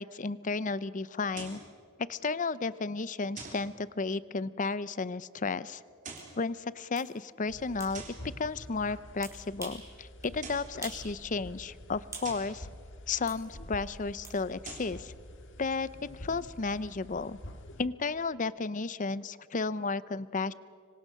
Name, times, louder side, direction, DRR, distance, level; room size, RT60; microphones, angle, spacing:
voice 1, 0.0-1.6 2.1-5.8 6.4-8.0 8.4-12.7 13.1-15.1 15.6-17.4 17.8-20.5, left 4 dB, 35° left, 17 dB, 0.6 m, -33 dB
sound 1, 1.3-1.7 3.4-3.7 5.9-6.4 7.9-8.3 10.2-10.8 12.2-12.6 14.5-15.0, right 4 dB, 35° right, 3.9 m, -45 dB
sound 2, 6.2-6.3 7.0-7.1 7.8-8.0 9.2-9.9 10.2-10.4 10.8-11.1 11.4-12.4 13.3-13.4 14.2-14.4, right 3 dB, 15° right, 4.7 m, -45 dB
sound 3, 7.5-17.9, left 1 dB, 55° left, 1.7 m, -48 dB
26.0 x 25.0 x 6.6 m, 2.2 s
head